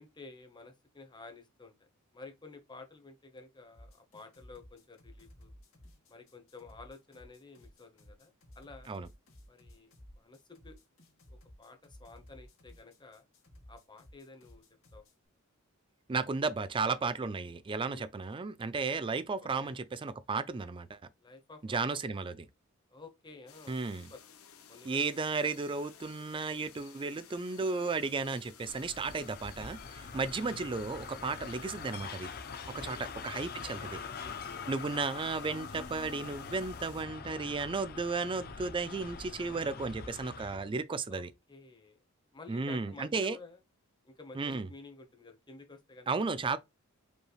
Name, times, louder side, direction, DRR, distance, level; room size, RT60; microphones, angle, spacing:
voice 1, 0.0-1.7 2.1-5.5 6.1-8.9 9.5-10.8 11.3-13.2 13.7-14.6 14.9-15.0 17.9-18.1 18.8-19.0 19.4-19.7 21.2-22.0 22.9-23.8 24.1-24.2 24.7-25.2 30.1-30.6 32.9-33.1 33.6-35.1 41.1-42.0 42.3-43.6 44.0-46.6, left 3 dB, 20° left, 1.0 m, -52 dB
sound 1, 3.7-15.1, left 1 dB, 70° left, 2.1 m, -56 dB
voice 2, 16.1-21.0 21.6-22.5 23.7-24.1 24.8-32.3 32.7-34.0 34.7-41.3 42.5-43.4 44.3-44.7 46.1-46.6, right 4 dB, 25° right, 0.4 m, -34 dB
sound 2, 23.5-37.0, left 8 dB, 85° left, 0.9 m, -55 dB
sound 3, 28.6-40.7, left 5 dB, 45° left, 0.6 m, -44 dB
5.2 x 3.2 x 2.3 m
head